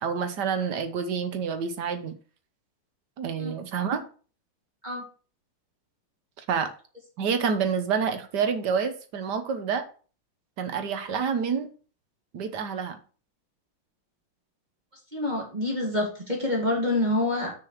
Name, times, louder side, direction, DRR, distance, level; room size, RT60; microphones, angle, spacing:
voice 1, 0.0-2.1 3.2-4.1 6.4-6.7 7.2-9.9 10.6-11.7 12.3-13.0, right 6 dB, 55° right, 9 dB, 1.5 m, -28 dB
voice 2, 15.1-17.5, left 2 dB, 20° right, -1 dB, 2.1 m, -27 dB
6.6 x 4.9 x 6.5 m, 0.38 s
omnidirectional pair, 2.3 m